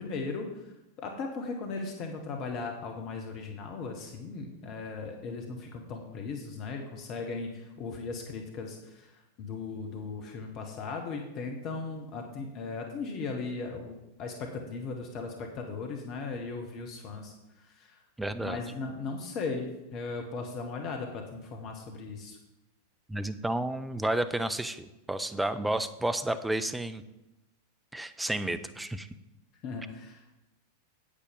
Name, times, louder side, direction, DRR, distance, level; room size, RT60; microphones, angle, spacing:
voice 1, 0.0-9.1 9.4-18.0 18.4-22.4 29.6-30.3, left 4 dB, 40° left, 3 dB, 1.2 m, -37 dB
voice 2, 18.2-18.6 23.1-27.0 27.9-29.1, right 1 dB, 5° right, 11 dB, 0.6 m, -31 dB
8.6 x 8.2 x 5.3 m, 0.97 s
figure-of-eight pair, 90°, 0 cm